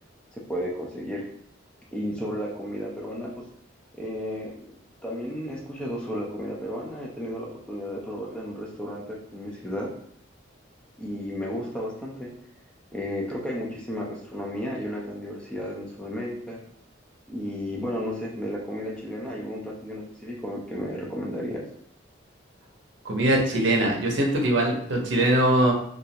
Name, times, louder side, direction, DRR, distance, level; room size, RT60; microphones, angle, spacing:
voice 1, 0.3-1.2 1.9-3.4 3.9-4.5 5.0-9.9 11.0-12.3 12.9-16.6 17.3-21.6, equal, 5° left, -3 dB, 0.5 m, -33 dB
voice 2, 23.0-25.7, right 1 dB, 65° right, 0 dB, 0.7 m, -22 dB
3.0 x 2.4 x 2.8 m, 0.65 s
head